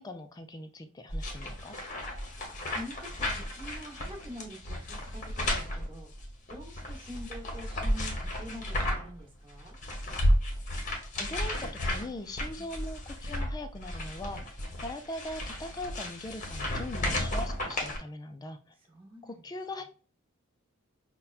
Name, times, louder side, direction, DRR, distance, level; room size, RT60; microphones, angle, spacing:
voice 1, 0.0-1.8 11.2-14.6 14.8-18.6 19.2-19.8, left 1 dB, 20° left, 8 dB, 0.3 m, -41 dB
sound 1, 1.1-9.2 9.5-18.0, left 1 dB, 35° left, 0.8 m, -33 dB
voice 2, 2.1-9.7 12.6-12.7 14.7-14.8 18.9-19.5 19.8-19.9, equal, 25° right, 0 dB, 1.0 m, -46 dB
5.5 x 2.2 x 2.3 m, 0.37 s
head